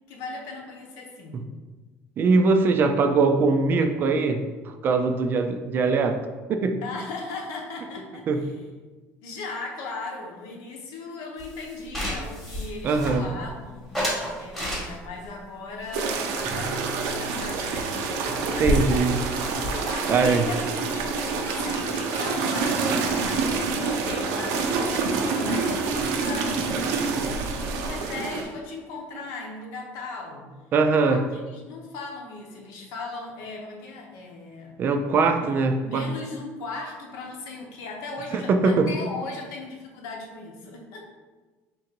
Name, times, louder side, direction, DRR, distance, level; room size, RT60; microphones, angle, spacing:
voice 1, 0.1-1.4 6.8-8.6 9.2-13.9 14.4-18.0 18.4-19.1 19.7-20.6 20.9-27.1 27.6-30.5 31.1-34.8 35.4-35.5 35.8-41.0, left 3 dB, 80° left, 1 dB, 0.9 m, -37 dB
voice 2, 2.2-4.4 4.8-6.2 6.5-6.8 8.3-8.4 12.8-13.4 18.6-19.1 20.1-20.5 30.7-31.2 34.8-36.1 38.3-38.8, right 4 dB, 35° right, 7 dB, 0.3 m, -21 dB
sound 1, 11.4-13.5 13.9-15.2 15.8-17.1 17.3-17.5 17.8-17.9 18.1-21.9, equal, 5° left, 1.0 m, -32 dB
sound 2, 15.9-28.4, right 4 dB, 85° right, 0.6 m, -27 dB
sound 3, 16.4-21.6, right 1 dB, 25° left, 0.7 m, -44 dB
3.7 x 2.6 x 4.3 m, 1.3 s
cardioid pair, 160°, 6 cm